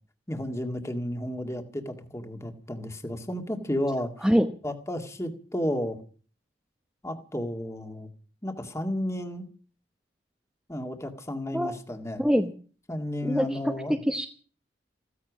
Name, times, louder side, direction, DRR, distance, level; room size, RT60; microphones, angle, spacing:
voice 1, 0.3-4.1 4.6-6.0 7.0-8.1 8.4-9.5 10.7-12.3 12.9-14.0, left 1 dB, 15° left, 5 dB, 2.0 m, -32 dB
voice 2, 12.2-12.5 13.2-14.3, equal, 5° right, 3 dB, 1.0 m, -24 dB
15.5 x 14.5 x 6.2 m, 0.41 s
head